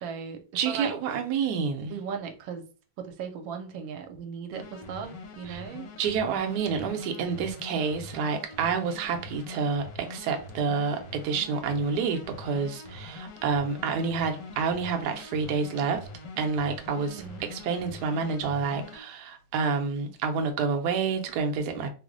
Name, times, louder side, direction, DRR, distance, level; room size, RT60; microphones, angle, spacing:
voice 1, 0.0-0.9 1.9-2.6 3.0-5.9 17.0-17.4, right 6 dB, 90° right, 1.4 m, -37 dB
voice 2, 0.5-1.9 5.5-5.6 6.0-16.1 16.4-21.9, right 5 dB, 70° right, 1.0 m, -28 dB
sound 1, 4.5-19.0, left 2 dB, 70° left, 1.2 m, -44 dB
3.1 x 2.0 x 3.6 m
omnidirectional pair, 2.1 m